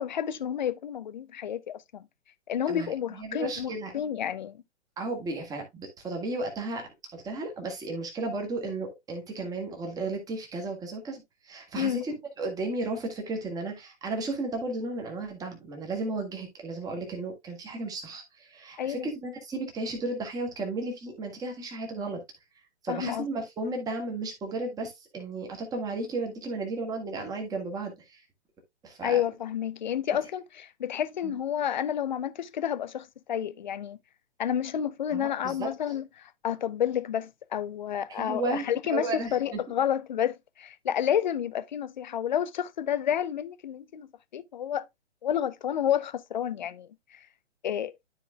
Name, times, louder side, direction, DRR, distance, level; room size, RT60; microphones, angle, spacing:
voice 1, 0.0-2.0 2.5-4.6 11.8-12.0 18.8-19.1 22.9-23.2 29.0-34.0 34.4-44.9 45.2-47.2 47.6-47.9, left 9 dB, 40° left, 0.5 m, -30 dB
voice 2, 2.7-3.9 5.0-22.2 22.8-28.2 28.8-29.2 30.1-30.2 31.2-31.4 35.1-35.7 38.1-39.6, right 2 dB, 10° right, 1.6 m, -34 dB
12.5 x 4.6 x 2.2 m
figure-of-eight pair, 130°, 36 cm